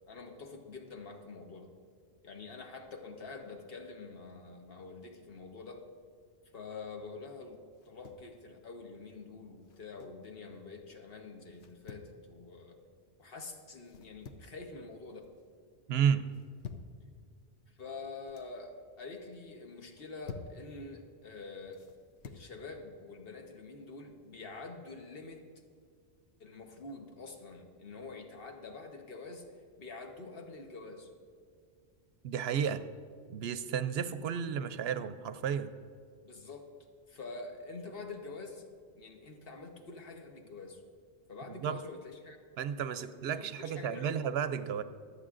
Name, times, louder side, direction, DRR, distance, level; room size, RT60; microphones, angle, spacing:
voice 1, 0.1-1.7 2.2-5.9 6.5-12.8 13.2-15.3 17.8-21.9 22.2-25.4 26.4-29.5 29.8-31.1 36.2-36.7 37.1-38.6 38.9-40.8 41.3-42.4 42.9-44.2, left 3 dB, 60° left, 3 dB, 1.3 m, -46 dB
sound 1, 7.7-8.3 9.6-10.3 11.5-12.1 13.8-14.6 15.0-15.4 16.3-17.0 18.0-18.5 19.8-20.6 21.7-22.5, left 6 dB, 80° left, 1.0 m, -49 dB
voice 2, 15.9-16.2 32.2-32.8 33.3-35.7 41.5-41.8 42.6-44.8, right 8 dB, 70° right, 12 dB, 0.8 m, -32 dB
24.5 x 8.4 x 2.5 m, 2.2 s
omnidirectional pair, 1.1 m